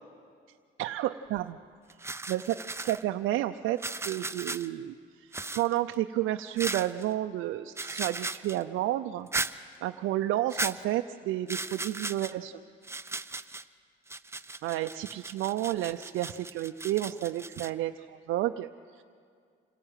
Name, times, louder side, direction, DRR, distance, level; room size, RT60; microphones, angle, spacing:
voice 1, 0.8-1.6 2.0-5.3 5.5-12.5 14.6-19.0, right 14 dB, 90° right, 6 dB, 0.6 m, -31 dB
sound 1, 1.3-1.5 1.9-3.0 3.8-4.7 5.3-5.9 6.6-7.0 7.8-8.6 9.3-9.5 10.5-10.7 11.5-12.3 12.8-13.6 14.1-17.7, right 3 dB, 15° right, 0.7 m, -36 dB
26.5 x 17.0 x 9.0 m, 2.2 s
cardioid pair, 90°, 20 cm